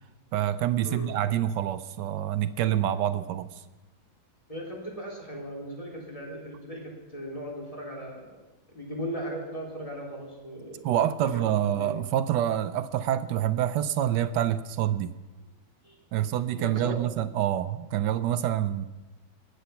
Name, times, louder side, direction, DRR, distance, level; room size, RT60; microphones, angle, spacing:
voice 1, 0.3-3.5 10.8-15.1 16.1-18.9, right 11 dB, 70° right, 13 dB, 1.1 m, -27 dB
voice 2, 4.5-8.3 8.7-10.8 11.3-11.4 11.8-11.9 15.8-16.0 16.6-17.0, equal, 15° left, -2 dB, 3.4 m, -37 dB
20.5 x 7.9 x 5.7 m, 1.1 s
omnidirectional pair, 2.2 m